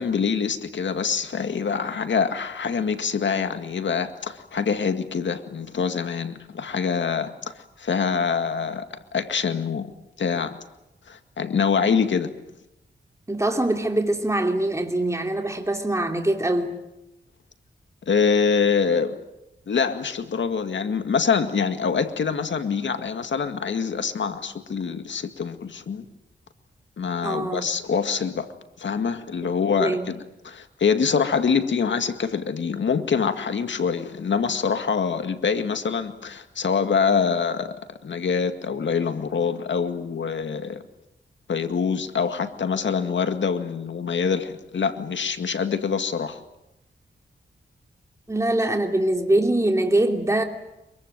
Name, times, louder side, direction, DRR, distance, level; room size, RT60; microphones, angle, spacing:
voice 1, 0.0-9.9 10.2-10.5 11.1-12.3 18.1-19.2 19.7-26.1 27.0-28.5 28.8-37.8 38.0-40.8 41.5-46.4, left 6 dB, 75° left, 8 dB, 2.1 m, -25 dB
voice 2, 13.3-16.8 27.2-27.6 29.8-30.1 48.3-50.4, right 1 dB, 15° right, 3 dB, 3.0 m, -23 dB
23.5 x 23.0 x 9.2 m, 0.91 s
cardioid pair, 65°, 19 cm